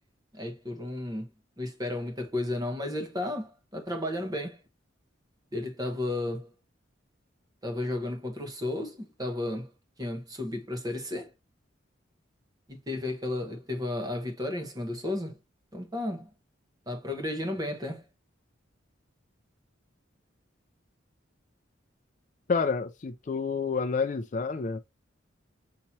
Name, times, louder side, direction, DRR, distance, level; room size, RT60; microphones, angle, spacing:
voice 1, 0.3-1.3 1.6-4.6 5.5-6.5 7.6-9.7 10.0-11.3 12.7-15.4 15.7-16.3 16.9-18.1, left 1 dB, 20° right, 1.0 m, -33 dB
voice 2, 22.5-24.8, left 5 dB, 40° left, 0.4 m, -29 dB
5.8 x 2.9 x 2.7 m
head